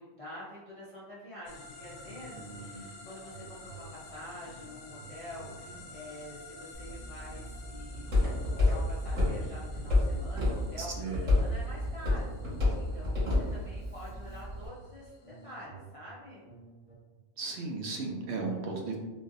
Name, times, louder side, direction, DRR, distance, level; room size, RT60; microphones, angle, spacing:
voice 1, 0.0-8.3 8.6-12.4 12.8-16.4 18.5-19.0, left 1 dB, 45° left, -8 dB, 0.5 m, -47 dB
sound 1, 1.5-15.6, left 3 dB, 75° left, 0.9 m, -51 dB
sound 2, 2.0-2.9 3.2-6.3 6.8-7.7 8.0-11.1 11.6-17.0, right 5 dB, 25° left, 0.9 m, -53 dB
voice 2, 2.3-2.8 10.8-11.3 17.4-19.0, right 3 dB, 65° right, 0 dB, 0.8 m, -36 dB
Walk footsteps, 6.7-14.7, left 2 dB, 85° right, 1.9 m, -30 dB
3.8 x 2.6 x 2.5 m, 1.3 s
omnidirectional pair, 1.3 m